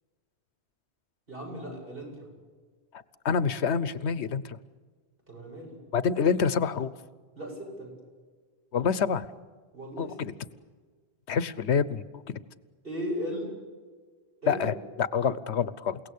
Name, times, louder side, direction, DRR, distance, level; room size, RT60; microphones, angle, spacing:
voice 1, 1.3-2.3 5.3-5.8 7.3-7.9 9.7-10.2 12.8-13.6 14.4-14.7, equal, 60° right, -1 dB, 8.4 m, -36 dB
voice 2, 3.2-4.6 5.9-6.9 8.7-9.3 10.0-10.3 11.3-12.4 14.5-16.0, left 6 dB, 90° left, 16 dB, 1.2 m, -27 dB
29.0 x 17.5 x 8.6 m, 1.5 s
omnidirectional pair, 1.1 m